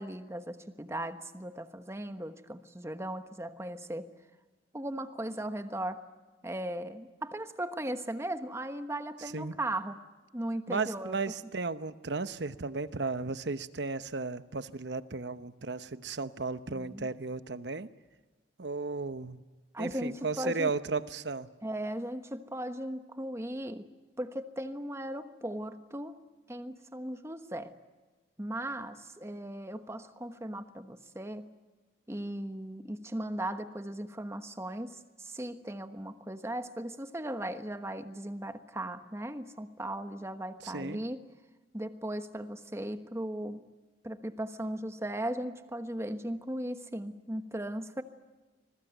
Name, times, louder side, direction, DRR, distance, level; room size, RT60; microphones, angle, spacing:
voice 1, 0.0-4.1 4.7-6.0 6.4-10.0 10.3-11.2 16.7-17.1 19.7-20.7 21.6-23.9 24.2-26.2 26.5-27.7 28.4-31.5 32.1-41.2 41.7-43.6 44.0-48.0, right 1 dB, 15° right, 9 dB, 1.2 m, -37 dB
voice 2, 10.7-17.9 18.6-19.4 19.8-21.5 40.6-41.0, right 4 dB, 70° right, 13 dB, 0.9 m, -35 dB
26.5 x 21.5 x 9.2 m, 1.3 s
head